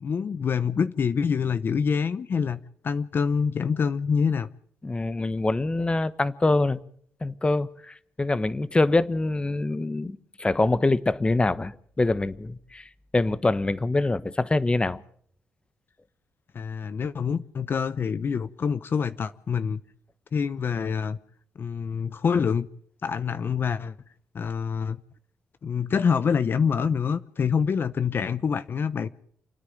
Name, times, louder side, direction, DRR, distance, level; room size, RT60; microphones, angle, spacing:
voice 1, 0.0-4.5 16.5-19.8 20.3-21.2 21.6-22.7 23.0-23.9 24.3-25.0 25.6-29.1, left 6 dB, 55° left, 0.8 m, -26 dB
voice 2, 4.8-6.8 7.2-15.0, left 2 dB, 25° left, 1.1 m, -25 dB
29.0 x 9.8 x 9.3 m
cardioid pair, 70°, 4 cm